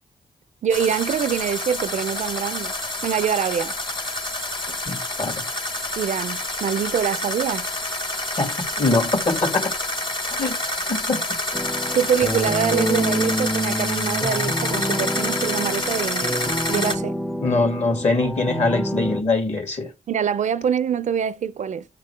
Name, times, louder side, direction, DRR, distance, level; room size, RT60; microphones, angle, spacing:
voice 1, 0.6-2.7 3.0-3.7 6.0-7.7 11.9-17.2 20.1-21.8, right 8 dB, 60° right, 0.4 m, -24 dB
sound 1, 0.7-16.9, left 1 dB, 35° left, 1.1 m, -28 dB
voice 2, 4.9-5.4 8.4-9.7 10.4-11.2 17.4-19.9, left 3 dB, 55° left, 2.2 m, -23 dB
sound 2, 11.5-19.2, equal, 5° left, 0.5 m, -27 dB
9.9 x 3.8 x 3.2 m
cardioid pair, 60°, 14 cm